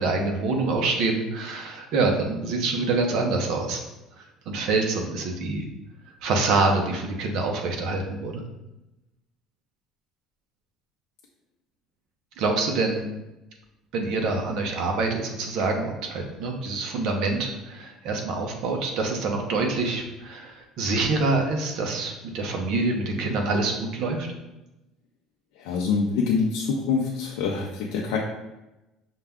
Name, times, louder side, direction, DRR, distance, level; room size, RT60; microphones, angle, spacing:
voice 1, 0.0-3.8 4.5-5.6 6.2-8.4 12.4-13.1 13.9-24.3, right 3 dB, 55° right, 2 dB, 0.7 m, -26 dB
voice 2, 25.6-28.2, left 5 dB, 85° left, -1 dB, 0.5 m, -25 dB
5.5 x 2.3 x 3.6 m, 0.98 s
cardioid pair, 165°, 0 cm